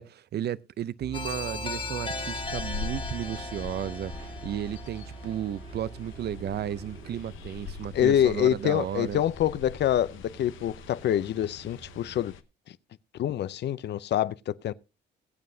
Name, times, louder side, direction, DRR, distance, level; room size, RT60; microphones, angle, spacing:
voice 1, 0.0-9.2, right 10 dB, 55° right, 0.5 m, -34 dB
sound 1, 1.0-12.2, right 3 dB, 30° right, 2.1 m, -44 dB
sound 2, 1.1-5.9, left 3 dB, 25° left, 1.4 m, -38 dB
sound 3, 2.0-12.4, left 6 dB, 80° left, 0.9 m, -44 dB
voice 2, 7.9-12.3 13.2-14.7, left 11 dB, 60° left, 0.6 m, -26 dB
21.0 x 7.6 x 2.7 m
cardioid pair, 90°, 20 cm